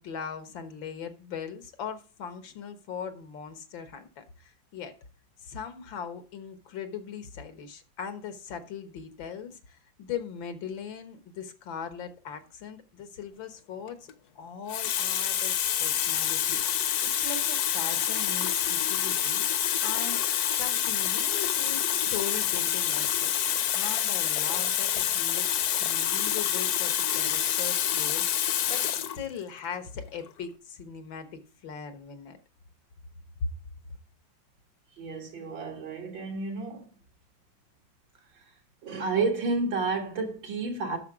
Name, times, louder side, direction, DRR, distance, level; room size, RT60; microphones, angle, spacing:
voice 1, 0.0-4.9 5.4-14.0 14.4-19.4 19.8-20.2 20.5-32.4 33.4-33.5, left 6 dB, 90° left, 2.0 m, -40 dB
Water tap faucet, 13.9-14.1 14.7-29.2 30.1-30.3, left 10 dB, 65° left, 1.1 m, -27 dB
voice 2, 35.0-36.9 38.8-41.0, right 3 dB, 85° right, 2.5 m, -30 dB
9.4 x 6.8 x 4.8 m
omnidirectional pair, 2.0 m